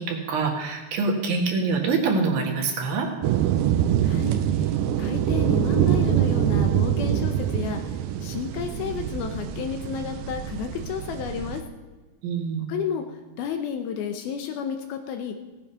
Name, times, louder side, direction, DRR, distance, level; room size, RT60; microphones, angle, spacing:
voice 1, 0.0-3.1 12.2-12.6, right 4 dB, 65° right, 0 dB, 3.3 m, -25 dB
sound 1, 3.2-11.6, right 10 dB, 80° right, 2.1 m, -24 dB
voice 2, 4.0-11.6 12.7-15.4, left 7 dB, 75° left, 6 dB, 2.5 m, -32 dB
16.5 x 9.3 x 5.6 m, 1.3 s
omnidirectional pair, 4.8 m